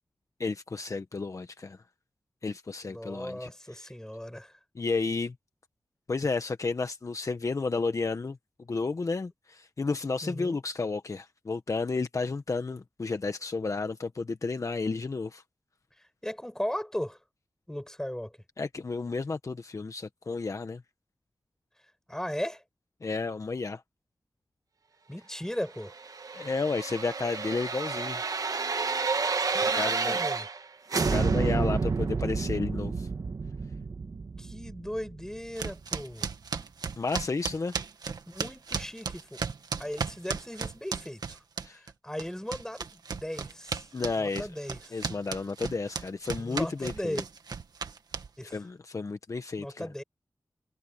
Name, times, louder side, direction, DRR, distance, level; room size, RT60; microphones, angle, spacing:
voice 1, 0.4-1.8 2.4-3.5 4.7-5.3 6.1-8.4 8.7-15.4 18.6-20.8 23.0-23.8 26.3-28.2 29.6-30.2 30.9-33.1 37.0-37.7 41.6-41.8 43.9-44.5 44.9-47.2 48.5-49.9, left 4 dB, 50° left, 1.2 m, -32 dB
voice 2, 2.8-4.5 10.2-10.6 16.0-17.2 17.7-18.4 22.1-22.6 25.1-25.9 29.5-30.5 34.4-36.3 38.3-39.4 39.8-41.4 41.7-43.9 44.2-45.0 46.4-47.2 48.4-48.6 49.6-50.0, equal, 10° left, 7.2 m, -37 dB
sound 1, 25.9-30.6 30.9-35.8 36.1-36.2, right 4 dB, 65° right, 1.5 m, -30 dB
sound 2, 35.6-41.9 42.2-48.5, right 5 dB, 80° right, 2.0 m, -35 dB
cardioid pair, 50°, 7 cm